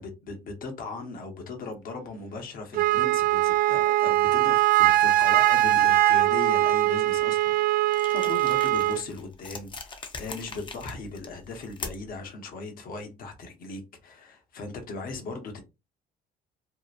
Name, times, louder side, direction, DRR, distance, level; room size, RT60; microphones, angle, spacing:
voice 1, 0.0-15.6, left 3 dB, 55° left, 0.9 m, -38 dB
Wind instrument woodwind instrument, 2.7-9.0, right 15 dB, 55° right, 0.4 m, -21 dB
sound 1, 7.9-12.2, left 4 dB, 30° left, 0.6 m, -42 dB
2.8 x 2.1 x 2.4 m
cardioid pair, 110°, 17 cm